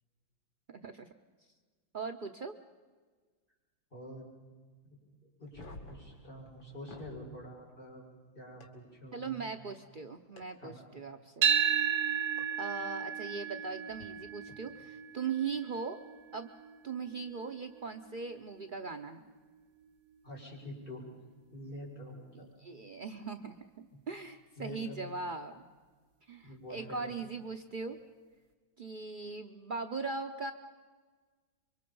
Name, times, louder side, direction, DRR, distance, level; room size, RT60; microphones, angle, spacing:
voice 1, 0.7-1.1 1.9-2.6 9.1-11.5 12.6-16.0 16.3-16.5 16.8-19.3 22.3-25.6 26.3-28.0 28.8-30.5, right 4 dB, 80° right, 5 dB, 0.4 m, -39 dB
voice 2, 3.9-4.3 5.4-8.0 8.3-9.5 10.6-10.8 14.4-14.5 20.2-21.0 21.5-22.5 24.6-25.0 26.4-27.3, equal, 25° left, -4 dB, 6.5 m, -46 dB
sound 1, 5.4-7.2 8.6-8.7 10.4-10.5 12.4-12.5 13.9-14.0, left 2 dB, 85° left, 3.3 m, -50 dB
sound 2, 11.4-19.6, right 8 dB, 60° right, 1.7 m, -34 dB
27.0 x 24.0 x 5.4 m, 1.4 s
omnidirectional pair, 2.1 m